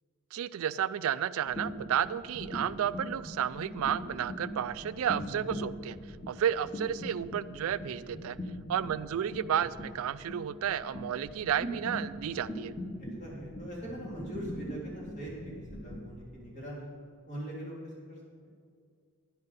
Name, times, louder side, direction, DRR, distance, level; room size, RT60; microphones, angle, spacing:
voice 1, 0.3-6.0 6.3-8.4 8.7-12.7, right 9 dB, 75° right, 16 dB, 0.3 m, -32 dB
sound 1, 1.4-16.3, equal, 15° left, 1.5 m, -41 dB
voice 2, 13.0-16.9 17.3-18.6, equal, 35° left, -5 dB, 2.9 m, -42 dB
10.5 x 10.5 x 4.1 m, 2.1 s
head